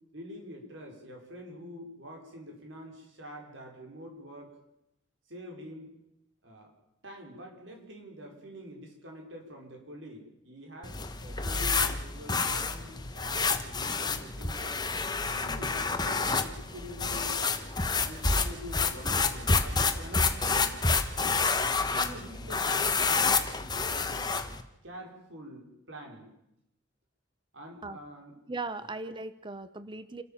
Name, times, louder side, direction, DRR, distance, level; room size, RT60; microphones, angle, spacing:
voice 1, 0.1-4.6 5.3-5.9 6.4-6.7 7.0-14.8 15.3-17.6 18.0-20.7 21.3-24.4 24.8-26.3 27.5-28.4 28.8-28.9, equal, 70° right, 1 dB, 5.9 m, -46 dB
sound 1, 10.8-24.6, left 4 dB, 20° left, 1.4 m, -29 dB
voice 2, 28.5-30.2, right 3 dB, 25° right, 13 dB, 1.0 m, -38 dB
28.5 x 13.5 x 7.4 m, 0.83 s
head